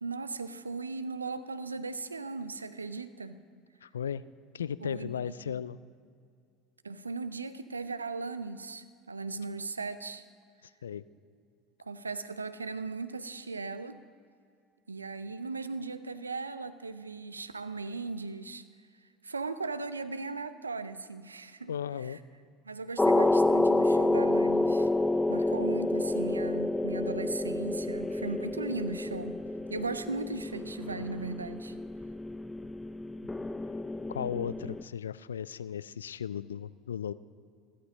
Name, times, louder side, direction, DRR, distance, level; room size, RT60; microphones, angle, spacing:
voice 1, 0.0-3.4 4.8-5.1 5.5-5.6 6.8-10.2 11.8-14.0 14.9-18.6 19.2-21.7 22.1-22.2 22.6-24.9 25.3-29.4 29.7-31.7, right 3 dB, 90° right, 13 dB, 0.5 m, -37 dB
voice 2, 3.8-4.2 4.5-5.8 10.8-11.0 21.7-22.2 34.1-37.1, left 8 dB, 80° left, 18 dB, 0.3 m, -36 dB
sound 1, 23.0-34.8, left 2 dB, 10° left, 0.5 m, -29 dB
14.5 x 13.0 x 5.0 m, 2.3 s
figure-of-eight pair, 70°, 0 cm